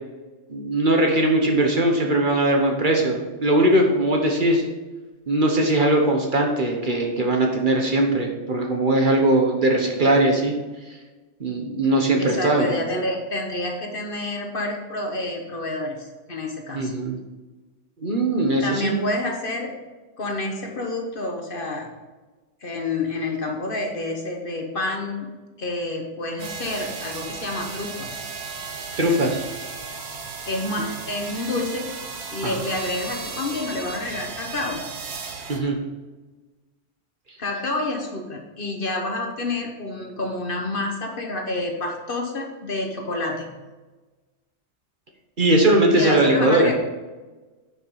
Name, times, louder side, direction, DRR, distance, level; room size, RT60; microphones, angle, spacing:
voice 1, 0.5-4.6 5.3-10.5 11.4-12.8 16.7-17.2 18.0-18.9 29.0-29.4 32.4-32.6 35.5-35.8 45.4-46.7, right 1 dB, 45° right, 1 dB, 1.3 m, -20 dB
voice 2, 12.2-16.9 18.6-19.7 20.2-21.9 22.6-25.3 25.6-28.2 30.5-31.9 32.3-34.8 37.4-43.6 45.9-46.7, left 2 dB, 45° left, 2 dB, 1.4 m, -28 dB
sound 1, 26.4-35.6, right 4 dB, 60° right, 1.2 m, -35 dB
9.4 x 5.7 x 4.7 m, 1.2 s
omnidirectional pair, 1.3 m